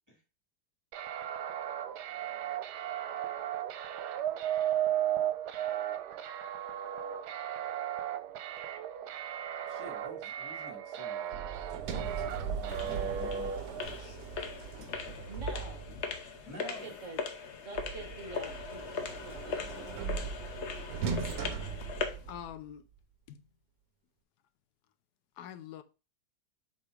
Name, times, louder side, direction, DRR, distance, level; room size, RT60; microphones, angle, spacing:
sound 1, 0.9-13.9, right 10 dB, 85° right, 1.3 m, -35 dB
voice 1, 9.7-11.3 11.8-14.2 16.4-16.9, equal, 10° right, 2.3 m, -50 dB
Sliding door, 11.3-16.2 17.7-22.7, right 6 dB, 70° right, 1.2 m, -39 dB
sound 2, 12.0-22.3, left 5 dB, 55° left, 0.9 m, -40 dB
voice 2, 15.3-15.9 16.6-17.2 17.6-20.7, right 2 dB, 55° right, 1.7 m, -47 dB
voice 3, 21.0-21.6 22.3-22.8 23.3-23.4 25.4-25.8, left 10 dB, 85° left, 1.1 m, -45 dB
7.5 x 2.8 x 4.9 m
omnidirectional pair, 1.7 m